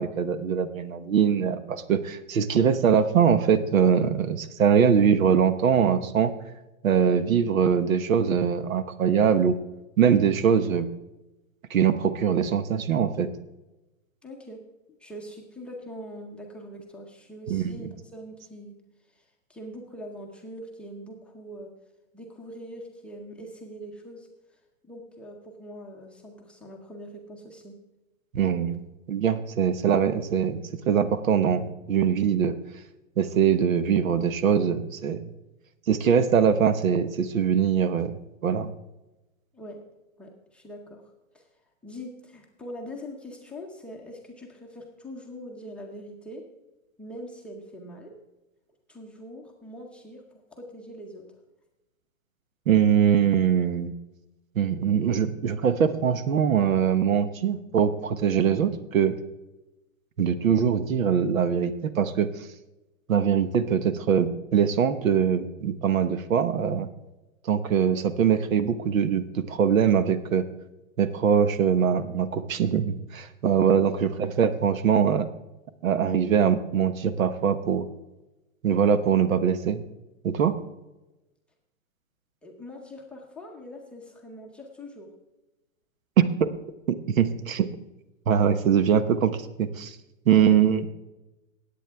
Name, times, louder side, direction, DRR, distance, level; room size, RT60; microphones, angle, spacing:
voice 1, 0.0-6.3 6.8-9.5 10.0-10.9 11.7-13.3 17.5-17.9 28.3-28.8 29.1-30.6 30.9-32.5 33.2-35.2 35.9-38.1 38.4-38.7 52.7-53.9 54.5-59.2 60.2-62.3 63.1-66.9 67.4-70.5 71.0-75.3 75.8-77.8 78.6-79.8 80.2-80.5 86.2-86.5 86.9-87.7 88.3-90.0 90.3-90.9, right 7 dB, 85° right, 12 dB, 1.2 m, -22 dB
voice 2, 14.2-14.6 15.0-18.8 19.1-21.7 22.1-24.3 24.8-27.8 39.5-39.8 40.2-41.0 41.3-41.5 41.8-46.4 47.0-48.1 48.9-51.3 73.7-73.9 82.4-85.1 90.3-90.5, equal, 5° left, -2 dB, 0.7 m, -42 dB
18.0 x 8.4 x 3.5 m, 1.0 s
hypercardioid pair, 160°, 39 cm